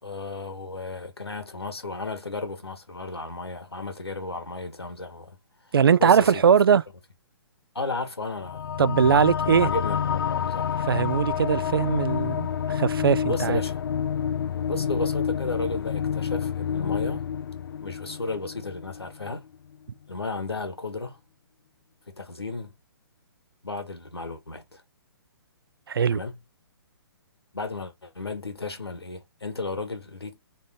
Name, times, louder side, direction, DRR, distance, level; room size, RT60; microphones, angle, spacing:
voice 1, 0.0-5.4 6.0-6.5 7.8-8.8 9.4-10.8 13.3-13.8 14.7-17.3 17.8-19.5 20.1-21.2 22.1-22.7 23.6-24.8 26.1-26.4 27.5-30.4, left 3 dB, 85° left, 1.8 m, -33 dB
voice 2, 5.7-6.8 8.8-9.7 10.9-13.6 25.9-26.2, right 7 dB, 65° right, 0.4 m, -20 dB
sound 1, 8.4-19.3, left 8 dB, 60° left, 0.4 m, -28 dB
3.8 x 3.8 x 3.7 m
figure-of-eight pair, 130°, 13 cm